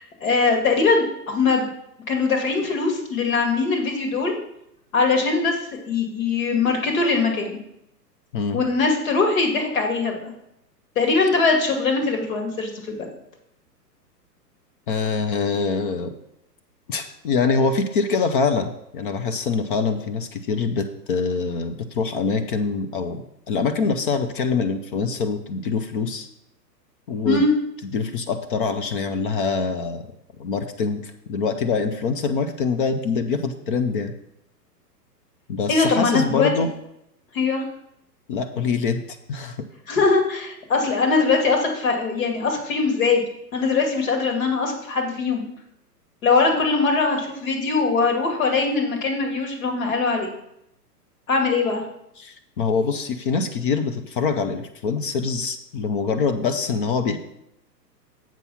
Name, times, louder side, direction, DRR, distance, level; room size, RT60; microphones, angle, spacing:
voice 1, 0.0-1.7 2.1-4.3 4.9-5.6 5.9-7.6 8.5-10.2 11.0-13.1 27.2-27.5 35.7-36.5 37.3-37.6 39.9-45.5 46.2-50.3 51.3-51.8, left 4 dB, 55° left, 2 dB, 2.3 m, -21 dB
voice 2, 14.9-16.1 16.9-26.3 27.1-27.4 27.9-30.0 30.4-34.1 35.5-36.7 38.3-39.6 52.2-57.2, left 5 dB, 35° left, 7 dB, 0.6 m, -24 dB
7.5 x 5.4 x 5.5 m, 0.80 s
figure-of-eight pair, 115°, 50 cm